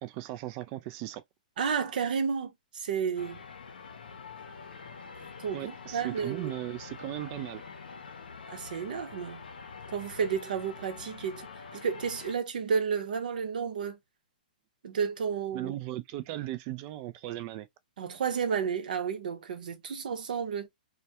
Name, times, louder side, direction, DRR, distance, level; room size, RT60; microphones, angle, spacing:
voice 1, 0.0-1.2 5.5-7.6 15.5-17.7, right 15 dB, 30° right, 0.3 m, -37 dB
voice 2, 1.6-3.4 5.4-6.5 8.5-9.4 9.9-14.0 14.8-15.7 18.0-20.7, right 6 dB, 70° right, 0.8 m, -32 dB
sound 1, 3.2-12.3, left 5 dB, 90° left, 0.6 m, -46 dB
2.2 x 2.2 x 2.8 m
hypercardioid pair, 145°, 5 cm